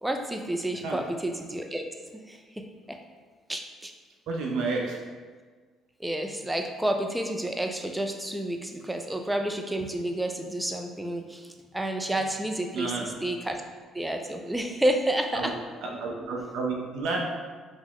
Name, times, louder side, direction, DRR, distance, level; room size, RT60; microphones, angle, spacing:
voice 1, 0.0-1.9 2.1-3.0 3.5-3.9 6.0-13.6 13.9-15.5, right 1 dB, 10° right, 4 dB, 0.3 m, -30 dB
voice 2, 4.3-4.9 12.7-13.1 15.3-15.6 15.8-17.3, right 3 dB, 80° right, 0 dB, 0.4 m, -30 dB
2.9 x 2.0 x 3.8 m, 1.5 s
cardioid pair, 85°, 0 cm